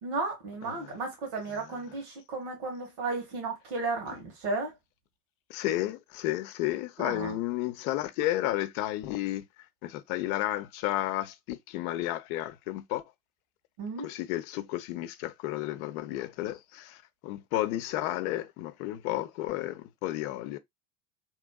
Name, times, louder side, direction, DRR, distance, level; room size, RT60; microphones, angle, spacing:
voice 1, 0.0-4.7 7.0-7.3 13.8-14.1, right 3 dB, 75° right, 1.5 m, -34 dB
voice 2, 0.6-0.9 1.5-1.8 5.5-9.5 9.8-13.0 14.0-20.6, left 15 dB, 70° left, 0.6 m, -32 dB
3.0 x 2.6 x 2.2 m
hypercardioid pair, 70°, 44 cm